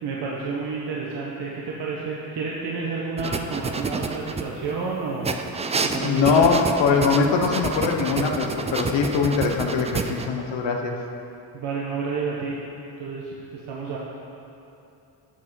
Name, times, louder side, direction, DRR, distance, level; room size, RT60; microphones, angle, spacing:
voice 1, 0.0-5.3 5.8-6.6 11.5-12.6 13.0-14.0, right 4 dB, 70° right, -4 dB, 1.2 m, -30 dB
sound 1, 3.2-4.8 5.2-10.3, right 4 dB, 15° right, 0.3 m, -29 dB
voice 2, 5.9-11.0, left 5 dB, 75° left, 2 dB, 1.1 m, -22 dB
8.4 x 7.4 x 4.7 m, 2.7 s
cardioid pair, 95°, 44 cm